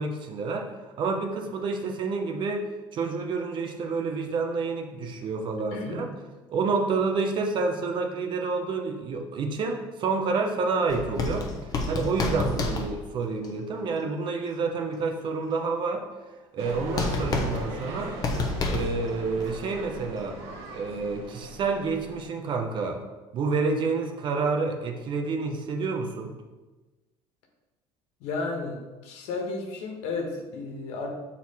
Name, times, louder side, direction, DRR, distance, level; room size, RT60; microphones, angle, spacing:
voice 1, 0.0-6.1 6.5-11.5 11.9-16.1 16.5-18.1 18.7-20.4 20.7-23.0 23.3-26.3, right 4 dB, 45° right, 4 dB, 0.9 m, -29 dB
voice 2, 5.7-6.0 16.7-17.0 28.2-28.8 29.0-31.1, left 3 dB, 80° left, 2 dB, 1.4 m, -33 dB
sound 1, 10.9-13.5 16.7-16.8 17.0-19.2 19.4-19.5, left 3 dB, 35° left, 1.0 m, -29 dB
sound 2, 16.6-22.3, right 2 dB, 70° right, 1.6 m, -39 dB
6.7 x 4.3 x 4.2 m, 1.2 s
cardioid pair, 120°, 11 cm